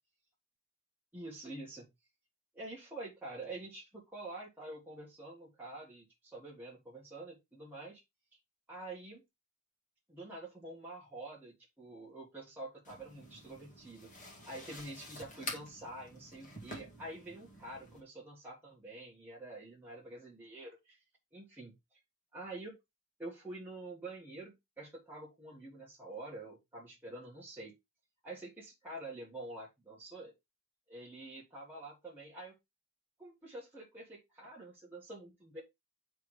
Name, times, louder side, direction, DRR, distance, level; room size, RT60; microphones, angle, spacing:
voice 1, 1.1-1.9 2.5-8.0 8.7-9.2 10.1-21.0 21.3-22.0 22.3-22.8 23.2-27.7 28.2-30.3 30.9-32.5 33.2-35.6, right 2 dB, 10° right, -6 dB, 1.5 m, -47 dB
sound 1, 12.8-18.0, left 1 dB, 35° left, 2.0 m, -48 dB
10.5 x 3.4 x 3.2 m, 0.21 s
head